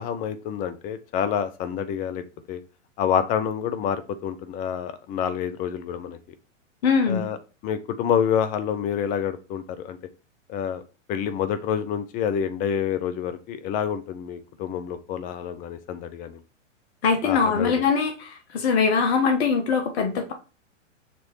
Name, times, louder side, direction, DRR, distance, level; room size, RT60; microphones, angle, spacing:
voice 1, 0.0-2.2 2.5-2.6 3.0-6.2 7.1-7.4 7.6-10.0 10.5-10.8 11.1-16.4 17.2-17.8, left 8 dB, 20° left, 11 dB, 0.5 m, -27 dB
voice 2, 6.8-7.2 17.0-20.3, left 5 dB, 55° left, 4 dB, 1.4 m, -22 dB
6.7 x 3.1 x 4.5 m, 0.31 s
hypercardioid pair, 115°, 39 cm